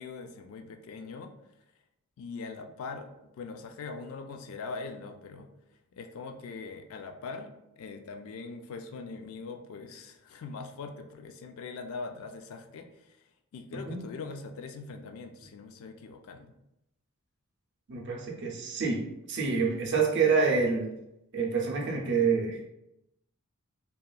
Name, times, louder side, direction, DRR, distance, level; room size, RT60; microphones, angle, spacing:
voice 1, 0.0-1.3 2.2-5.5 5.9-13.2 13.5-16.5, left 4 dB, 65° left, 6 dB, 0.3 m, -42 dB
voice 2, 13.7-14.0 17.9-20.9 21.3-22.7, right 5 dB, 50° right, -1 dB, 0.5 m, -27 dB
2.8 x 2.3 x 2.3 m, 0.88 s
head